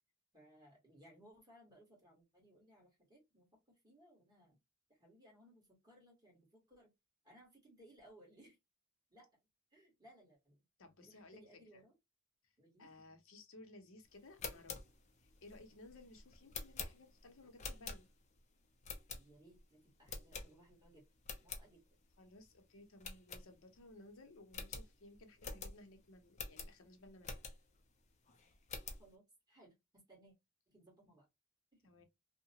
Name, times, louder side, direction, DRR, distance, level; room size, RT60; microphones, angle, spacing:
voice 1, 0.3-4.6 4.9-6.9 7.2-8.6 9.1-9.3 9.7-10.6 11.0-11.9 12.6-13.1 19.1-21.1 21.4-21.8 29.0-30.4 30.7-31.3 31.7-31.9, right 1 dB, 20° right, 1.5 m, -64 dB
voice 2, 10.8-11.4 11.7-11.8 12.4-12.5 12.8-14.8 15.2-18.1 22.2-27.3 31.8-32.0, left 2 dB, 65° left, 0.7 m, -58 dB
sound 1, 14.2-18.4 18.8-19.6 20.1-20.9 21.2-21.7 22.1-22.2 22.4-22.6 23.0-23.9 24.2-24.3 24.5-27.8 28.3-29.1, left 5 dB, 30° left, 0.5 m, -47 dB
2.8 x 2.1 x 2.8 m
head